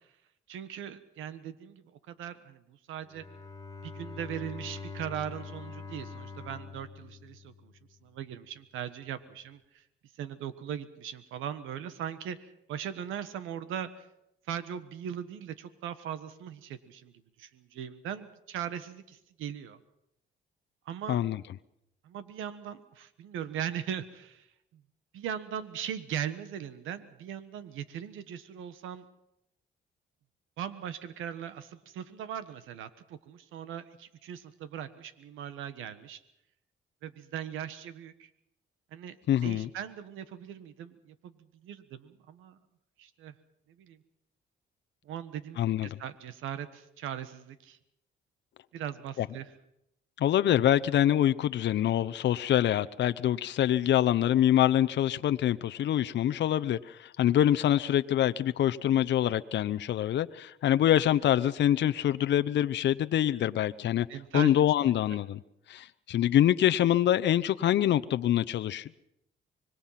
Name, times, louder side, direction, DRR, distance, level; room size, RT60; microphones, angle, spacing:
voice 1, 0.5-3.2 3.8-7.7 8.0-9.8 10.2-14.1 14.5-17.1 17.4-19.8 20.8-21.2 22.0-24.5 24.7-24.8 25.1-29.0 30.6-36.2 37.0-38.3 38.9-39.2 39.4-41.4 41.6-42.6 43.0-43.3 43.8-44.0 45.0-47.8 48.7-49.5 64.1-64.6, right 9 dB, 90° right, 1.4 m, -39 dB
Bowed string instrument, 3.0-8.0, left 4 dB, 15° left, 3.5 m, -44 dB
voice 2, 21.1-21.4 39.3-39.7 45.6-46.0 49.2-49.3 50.2-64.1 64.3-65.4 65.7-69.0, left 11 dB, 65° left, 0.7 m, -25 dB
25.5 x 22.0 x 5.8 m
cardioid pair, 90°, 20 cm